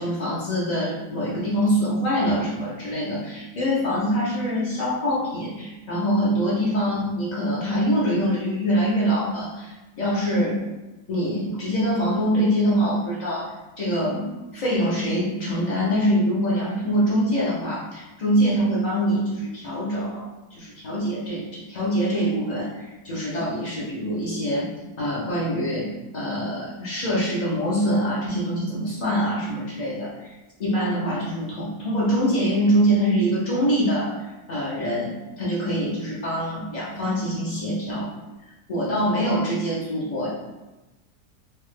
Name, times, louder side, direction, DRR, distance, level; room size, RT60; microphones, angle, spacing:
voice 1, 0.0-10.7 11.1-24.7 25.0-30.3 30.6-34.1 34.5-38.1 38.7-40.3, equal, 85° left, -7 dB, 0.3 m, -24 dB
3.4 x 2.1 x 3.1 m, 1.1 s
omnidirectional pair, 1.8 m